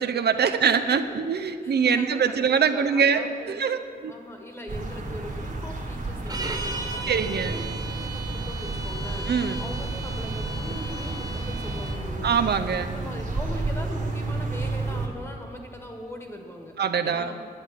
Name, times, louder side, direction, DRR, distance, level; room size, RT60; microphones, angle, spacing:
voice 1, 0.0-4.1 7.1-7.6 9.3-9.6 12.2-12.9 16.8-17.3, right 6 dB, 85° right, 8 dB, 0.7 m, -23 dB
voice 2, 1.6-2.4 2.7-3.6 4.1-12.4 12.8-17.4, left 1 dB, 15° left, 3 dB, 1.6 m, -40 dB
sound 1, 4.7-15.1, right 2 dB, 55° right, 1.6 m, -31 dB
sound 2, 6.3-12.0, right 2 dB, 25° right, 1.1 m, -36 dB
9.8 x 9.2 x 8.2 m, 2.3 s
wide cardioid pair, 145°, 16 cm